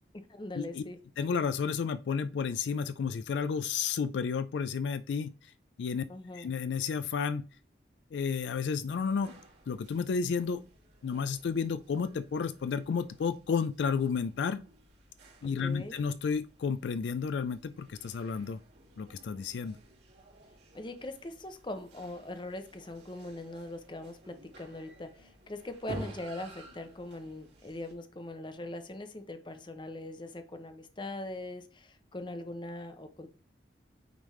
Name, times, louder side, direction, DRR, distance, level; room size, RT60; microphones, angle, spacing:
voice 1, 0.1-1.0 6.1-6.5 15.6-16.0 20.7-33.3, left 1 dB, 25° left, 0.7 m, -41 dB
voice 2, 1.2-5.3 5.8-6.0 6.3-7.4 8.1-9.4 9.7-10.6 11.0-14.6 15.4-18.6 19.0-19.8, left 6 dB, 75° left, 0.3 m, -31 dB
sound 1, 8.9-27.9, right 1 dB, 70° right, 2.9 m, -52 dB
8.9 x 3.4 x 3.1 m
head